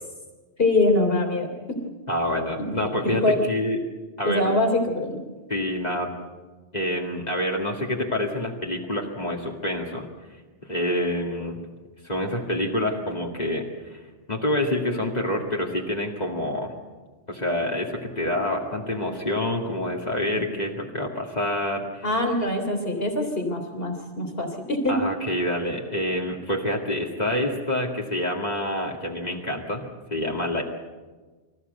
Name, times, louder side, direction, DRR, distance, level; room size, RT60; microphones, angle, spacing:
voice 1, 0.6-1.8 2.6-2.7 3.0-3.4 4.2-5.2 22.0-25.0, left 2 dB, 60° left, 4 dB, 3.6 m, -24 dB
voice 2, 2.1-3.8 4.2-4.5 5.5-6.1 6.7-10.1 10.6-11.6 12.0-14.0 14.3-16.7 17.3-22.1 24.9-30.6, left 1 dB, 40° left, -1 dB, 2.2 m, -27 dB
25.5 x 14.5 x 8.1 m, 1.3 s
omnidirectional pair, 1.1 m